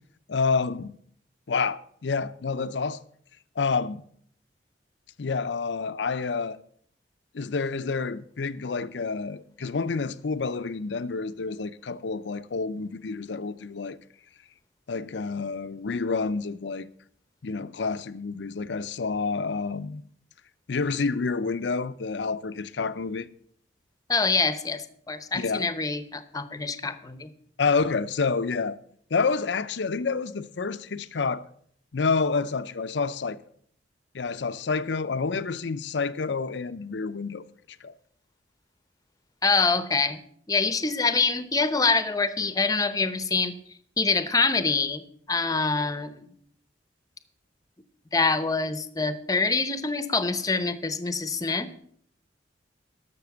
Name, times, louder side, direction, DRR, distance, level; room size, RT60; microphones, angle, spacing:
voice 1, 0.3-0.9 1.5-3.0 3.6-4.0 5.2-6.6 7.3-14.0 14.9-16.9 17.4-20.0 20.7-23.3 25.3-25.7 27.6-28.8 29.1-31.4 31.9-33.4 34.1-37.4 37.8-37.9, left 4 dB, 75° left, 0.6 m, -28 dB
voice 2, 24.1-27.3 39.4-40.2 40.5-43.5 44.0-45.0 45.3-46.2 48.1-51.7, left 4 dB, 20° left, 0.8 m, -25 dB
12.0 x 6.9 x 7.0 m
head